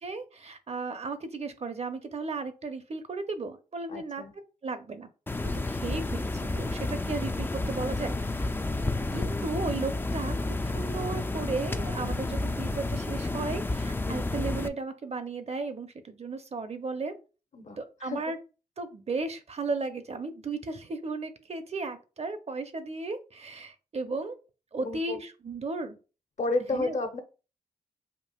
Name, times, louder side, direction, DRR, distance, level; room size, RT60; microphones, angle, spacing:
voice 1, 0.0-4.2 4.6-5.1 5.7-8.5 9.1-17.1 17.8-18.4 18.8-24.4 24.7-26.0 26.7-27.0, right 3 dB, 45° right, 9 dB, 0.7 m, -35 dB
voice 2, 3.9-4.3 14.0-14.3 17.5-18.2 24.8-25.2 26.4-27.2, left 2 dB, 50° left, 6 dB, 0.8 m, -32 dB
sound 1, 5.3-14.7, left 2 dB, 15° left, 0.3 m, -31 dB
5.2 x 2.4 x 2.3 m, 0.33 s
cardioid pair, 55°, 16 cm